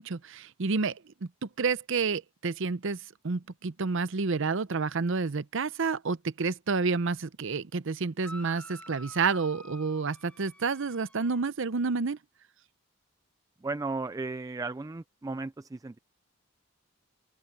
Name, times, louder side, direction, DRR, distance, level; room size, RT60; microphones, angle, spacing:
voice 1, 0.0-12.2, right 4 dB, 60° right, 0.7 m, -30 dB
sound 1, 8.2-11.5, left 1 dB, 5° left, 1.3 m, -49 dB
voice 2, 13.6-16.0, right 3 dB, 15° right, 0.3 m, -35 dB
open air
head